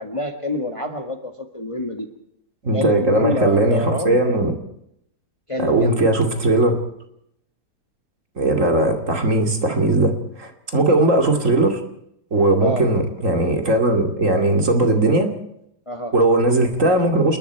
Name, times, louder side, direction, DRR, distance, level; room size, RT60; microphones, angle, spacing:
voice 1, 0.0-2.1 2.7-4.2 5.5-6.0 12.6-12.9 15.9-16.1, left 1 dB, 20° left, 5 dB, 1.6 m, -27 dB
voice 2, 2.6-4.5 5.6-6.8 8.4-11.8 12.3-15.3 16.1-17.4, right 2 dB, 50° right, 4 dB, 2.9 m, -18 dB
28.0 x 21.5 x 4.6 m, 0.74 s
omnidirectional pair, 1.8 m